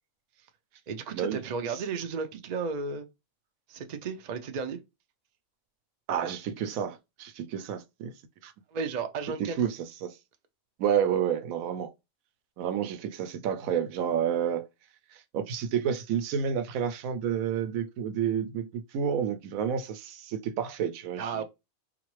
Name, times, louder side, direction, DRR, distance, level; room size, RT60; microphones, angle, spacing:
voice 1, 0.9-3.1 3.7-4.8 8.7-9.7 21.2-21.4, right 5 dB, 60° right, 0.4 m, -33 dB
voice 2, 6.1-8.1 8.4-8.5 9.4-10.2 10.8-11.9 12.6-14.7 15.1-21.4, right 8 dB, 80° right, 1.0 m, -30 dB
3.8 x 2.5 x 3.1 m
omnidirectional pair, 1.5 m